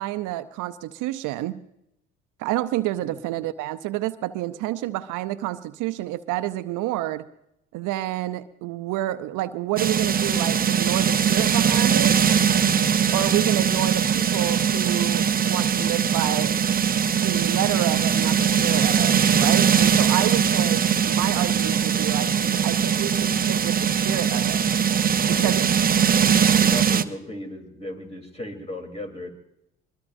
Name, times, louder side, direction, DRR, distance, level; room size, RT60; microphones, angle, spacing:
voice 1, 0.0-1.6 2.4-7.3 7.7-12.2 13.1-16.5 17.1-24.6 25.3-25.6, right 15 dB, 65° right, 11 dB, 0.7 m, -29 dB
voice 2, 3.0-3.4 25.2-25.6 26.5-29.3, left 1 dB, 20° left, 3 dB, 3.5 m, -36 dB
sound 1, 9.8-27.0, right 8 dB, 25° right, 0.7 m, -21 dB
22.5 x 21.5 x 2.6 m, 0.81 s
hypercardioid pair, 65°, 33 cm